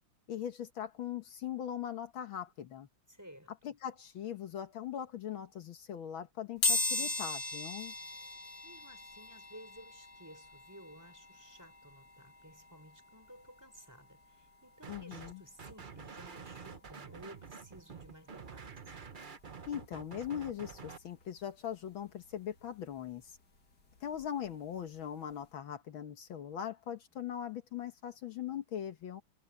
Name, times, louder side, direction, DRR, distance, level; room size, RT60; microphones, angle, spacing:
voice 1, 0.3-2.9 3.6-7.9 14.9-15.4 19.7-23.4 24.0-29.2, left 9 dB, 70° left, 1.9 m, -40 dB
voice 2, 3.1-3.7 8.6-18.8, equal, 10° right, 5.0 m, -55 dB
sound 1, 6.6-17.3 17.8-17.9 19.0-19.1 19.4-21.5 21.8-24.5 24.8-25.0 25.3-25.4, left 2 dB, 50° left, 2.7 m, -39 dB
sound 2, 14.8-15.3 15.6-21.0, right 5 dB, 40° right, 0.8 m, -48 dB
omnidirectional pair, 2.3 m